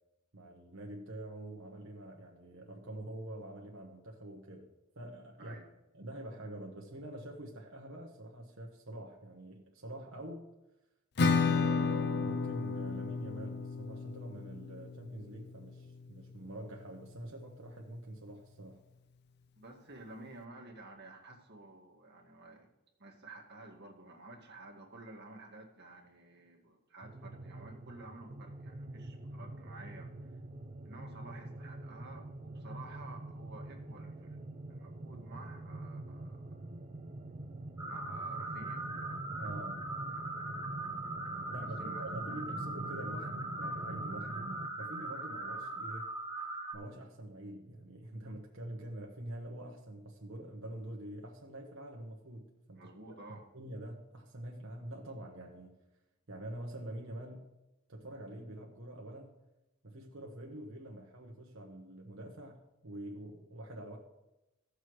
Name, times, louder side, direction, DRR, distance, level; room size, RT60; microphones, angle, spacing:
voice 1, 0.3-4.7 5.0-5.6 5.9-10.5 11.3-18.8 39.3-39.8 41.5-44.5 44.7-46.1 46.7-55.8 56.3-57.5 57.9-59.4 59.8-64.0, right 1 dB, 70° right, -1 dB, 1.2 m, -46 dB
Acoustic guitar / Strum, 11.2-16.6, left 4 dB, 55° left, 0.5 m, -33 dB
voice 2, 19.6-22.7 23.0-30.3 30.9-34.4 34.7-36.7 37.9-38.9 41.6-42.4 52.8-53.4, right 2 dB, 55° right, 0 dB, 1.9 m, -52 dB
sound 1, 27.0-44.7, right 2 dB, 35° right, 0.5 m, -45 dB
sound 2, 37.8-46.7, right 2 dB, 10° right, 1.5 m, -40 dB
16.5 x 6.6 x 3.2 m, 0.97 s
head